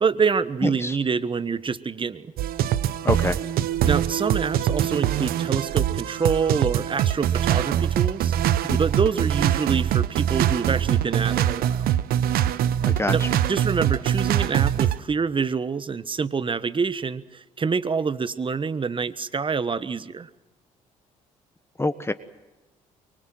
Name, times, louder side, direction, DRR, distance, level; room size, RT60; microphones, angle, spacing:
voice 1, 0.0-2.3 3.8-8.3 8.8-11.9 13.1-13.2 13.5-20.3, right 5 dB, 30° right, 15 dB, 1.3 m, -26 dB
voice 2, 0.6-1.0 3.0-3.4 8.7-8.8 12.8-13.4 21.8-22.1, left 2 dB, 15° left, 11 dB, 1.3 m, -26 dB
sound 1, 2.4-15.0, right 11 dB, 65° right, 0.9 m, -23 dB
24.0 x 23.5 x 7.8 m, 1.1 s
hypercardioid pair, 55°, 16 cm